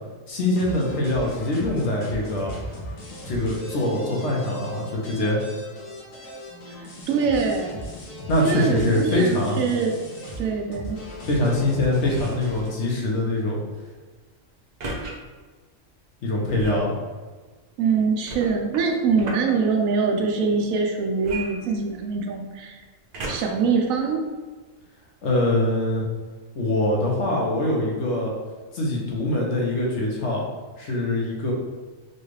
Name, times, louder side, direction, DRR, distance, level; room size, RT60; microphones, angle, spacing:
voice 1, 0.3-2.5 3.2-5.4 8.3-9.6 11.3-13.6 16.2-16.9 25.2-26.0 26.5-28.3 28.7-30.4 30.8-31.5, left 1 dB, 65° left, -2 dB, 1.1 m, -23 dB
sound 1, 0.5-12.7, equal, 85° left, 1.4 m, -38 dB
voice 2, 6.7-7.8 8.4-10.0 10.4-11.0 17.8-22.8 23.3-24.2, right 5 dB, 85° right, 2 dB, 1.0 m, -24 dB
sound 2, 12.1-12.5 14.8-15.1 16.5-16.9 18.3-19.5 21.2-22.2 23.1-23.7 24.3-24.4, right 2 dB, 55° right, 0.5 m, -35 dB
4.3 x 2.3 x 3.2 m, 1.4 s
omnidirectional pair, 1.4 m